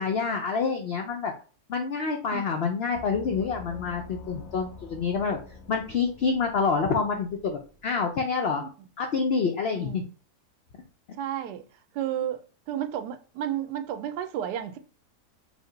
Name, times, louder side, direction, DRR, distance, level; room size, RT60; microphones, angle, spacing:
voice 1, 0.0-1.3 1.7-5.4 5.7-8.6 9.0-10.0, left 5 dB, 90° left, 0.5 m, -27 dB
voice 2, 2.3-2.6 8.6-8.7 9.8-10.1 11.2-11.6 11.9-12.4 12.7-14.8, right 10 dB, 90° right, 1.2 m, -32 dB
Gong, 2.9-8.2, left 4 dB, 40° left, 0.6 m, -46 dB
5.0 x 2.1 x 3.8 m
omnidirectional pair, 1.7 m